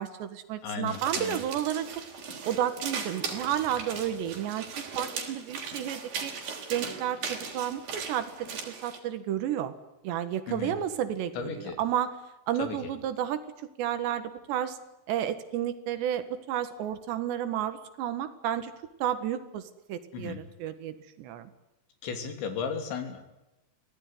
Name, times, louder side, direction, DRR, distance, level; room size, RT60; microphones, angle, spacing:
voice 1, 0.0-1.9 2.4-6.3 6.7-9.7 10.0-12.1 12.5-13.4 13.8-14.8 15.1-18.7 19.0-21.5, right 10 dB, 75° right, 11 dB, 3.7 m, -31 dB
voice 2, 0.6-1.4 10.5-10.8 11.3-11.8 12.6-12.9 20.1-20.4 22.0-23.2, left 6 dB, 85° left, 7 dB, 5.4 m, -35 dB
sound 1, 0.9-9.0, right 5 dB, 55° right, 4.8 m, -38 dB
24.0 x 17.5 x 9.6 m, 0.96 s
omnidirectional pair, 5.1 m